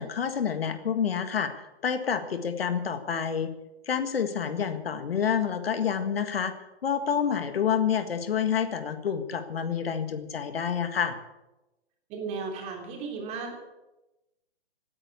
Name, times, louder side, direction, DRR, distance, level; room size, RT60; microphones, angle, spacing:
voice 1, 0.0-3.5 3.9-6.6 6.8-11.2, left 7 dB, 65° left, 9 dB, 1.7 m, -28 dB
voice 2, 12.1-13.6, right 4 dB, 20° right, 1 dB, 3.1 m, -35 dB
17.0 x 9.4 x 8.3 m, 1.0 s
hypercardioid pair, 150°, 32 cm